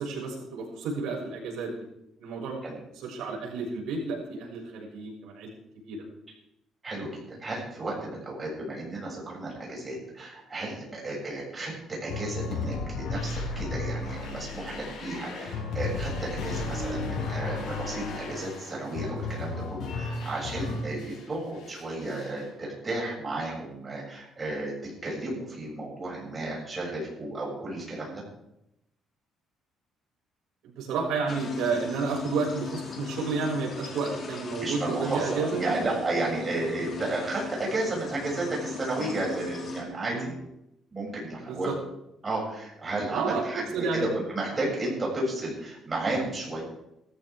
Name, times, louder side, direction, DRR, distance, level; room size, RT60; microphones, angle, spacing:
voice 1, 0.0-1.8 2.2-2.6 3.0-5.5 5.8-6.0 30.6-35.8 40.1-40.3 41.4-41.7 43.1-44.1, right 4 dB, 85° right, -2 dB, 6.5 m, -31 dB
voice 2, 6.8-28.2 34.6-40.4 40.9-41.7 42.2-46.6, right 2 dB, 20° right, -4 dB, 7.4 m, -33 dB
sound 1, 12.1-21.2 21.6-22.4, left 3 dB, 80° left, 6.0 m, -34 dB
sound 2, 31.3-39.8, left 5 dB, 35° left, 2.7 m, -39 dB
19.0 x 14.5 x 3.7 m, 0.82 s
cardioid pair, 160°, 0 cm